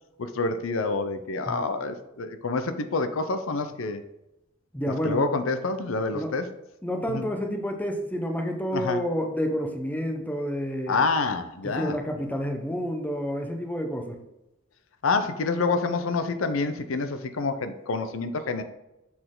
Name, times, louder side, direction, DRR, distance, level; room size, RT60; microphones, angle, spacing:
voice 1, 0.2-4.0 5.0-6.5 7.1-7.3 8.7-9.0 10.9-12.0 15.0-18.6, left 3 dB, 75° left, 9 dB, 0.6 m, -27 dB
voice 2, 4.7-5.2 6.1-6.3 6.8-11.0 11.6-14.2, equal, 10° left, 3 dB, 0.8 m, -29 dB
6.7 x 4.3 x 3.8 m, 0.91 s
head